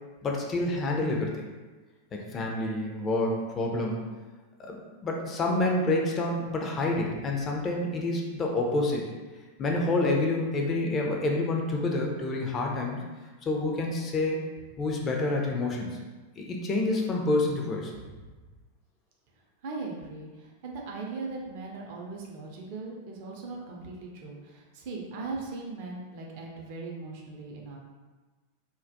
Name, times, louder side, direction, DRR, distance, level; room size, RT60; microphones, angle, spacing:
voice 1, 0.2-1.3 2.1-4.1 4.6-9.1 9.6-13.0 13.4-14.4 14.8-16.0 16.4-17.9, left 2 dB, 25° left, 0 dB, 0.4 m, -28 dB
voice 2, 19.6-27.8, right 3 dB, 50° right, 0 dB, 0.4 m, -39 dB
2.2 x 2.1 x 2.7 m, 1.3 s
figure-of-eight pair, 90°, 0 cm